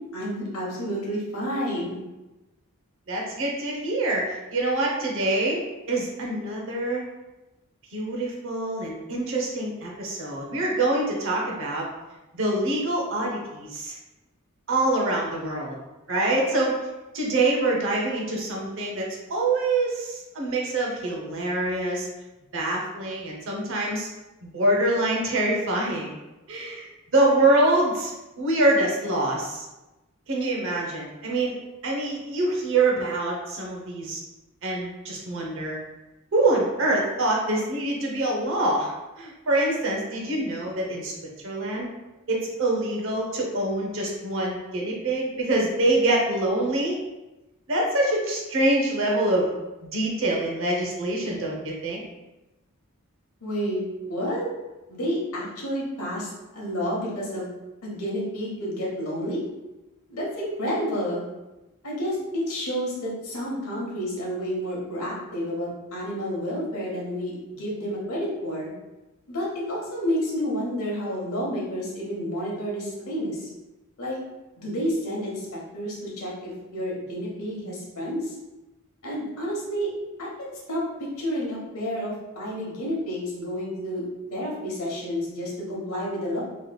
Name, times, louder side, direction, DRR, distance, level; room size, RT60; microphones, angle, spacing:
voice 1, 0.1-2.0 53.4-53.8 54.1-54.5 54.9-57.4 57.8-59.4 60.1-61.2 61.8-68.7 69.3-73.4 74.0-74.2 74.6-78.2 79.0-79.9 80.2-80.8 81.2-84.0 84.3-86.4, equal, 80° left, -4 dB, 1.0 m, -30 dB
voice 2, 3.1-7.0 7.9-11.9 12.3-13.9 14.7-15.8 16.1-16.8 17.1-22.1 22.5-24.1 24.4-26.1 26.5-28.1 28.4-29.7 30.3-31.6 31.8-34.2 34.6-35.8 36.3-41.1 41.4-41.9 42.3-47.0 47.7-49.5 49.9-52.0, right 2 dB, 60° right, -2 dB, 0.8 m, -25 dB
3.4 x 3.0 x 2.2 m, 1.0 s
head